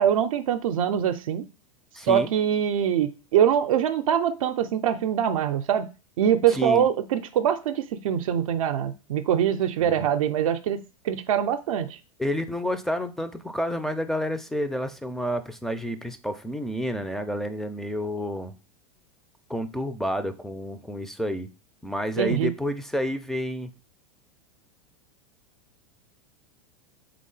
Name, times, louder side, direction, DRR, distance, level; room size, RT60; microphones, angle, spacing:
voice 1, 0.0-1.5 2.1-5.9 6.2-12.0 22.2-22.5, right 9 dB, 70° right, 0.5 m, -23 dB
voice 2, 1.9-2.3 6.5-6.8 9.8-10.1 12.2-18.5 19.5-21.5 21.8-23.7, equal, ahead, 0.4 m, -30 dB
3.7 x 3.4 x 3.8 m
hypercardioid pair, 100°, 18 cm